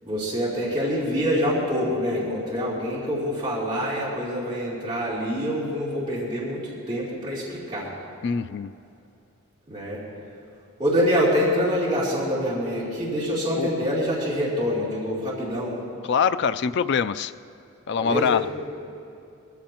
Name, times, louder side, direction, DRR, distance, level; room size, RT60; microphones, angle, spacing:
voice 1, 0.0-7.9 9.7-10.0 10.8-15.7 17.9-18.5, equal, 20° right, -9 dB, 3.0 m, -25 dB
voice 2, 8.2-8.7 13.6-13.7 16.1-17.3 17.9-18.4, left 6 dB, 50° left, 12 dB, 0.3 m, -23 dB
20.0 x 15.5 x 2.9 m, 2.8 s
head